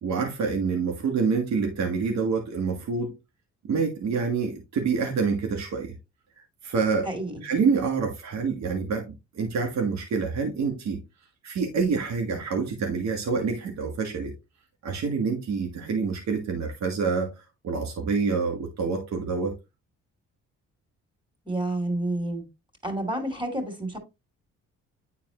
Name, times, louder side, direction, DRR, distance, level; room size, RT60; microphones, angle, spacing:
voice 1, 0.0-3.1 3.6-5.9 6.6-7.1 7.4-11.0 11.4-14.3 14.8-17.3 17.6-19.5, right 5 dB, 65° right, 1.7 m, -27 dB
voice 2, 7.0-7.4 21.4-22.4 22.8-24.0, right 1 dB, 15° right, 3.2 m, -29 dB
9.9 x 4.1 x 3.0 m
cardioid pair, 90°, 30 cm